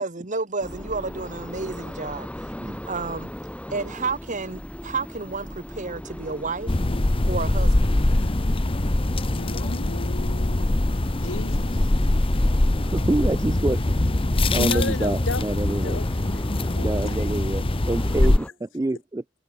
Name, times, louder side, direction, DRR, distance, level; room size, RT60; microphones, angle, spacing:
voice 1, 0.0-3.3 3.7-6.8 7.3-7.9, right 4 dB, 40° right, 1.8 m, -31 dB
sound 1, 0.6-18.5, equal, 5° left, 1.3 m, -39 dB
sound 2, 6.7-18.4, left 1 dB, 30° left, 0.9 m, -23 dB
voice 2, 9.4-10.7 11.2-11.7 14.6-15.4 15.8-16.4 16.7-17.3, left 3 dB, 75° left, 1.5 m, -33 dB
voice 3, 12.8-14.0 14.5-16.0 16.8-19.2, right 2 dB, 15° right, 0.4 m, -27 dB
head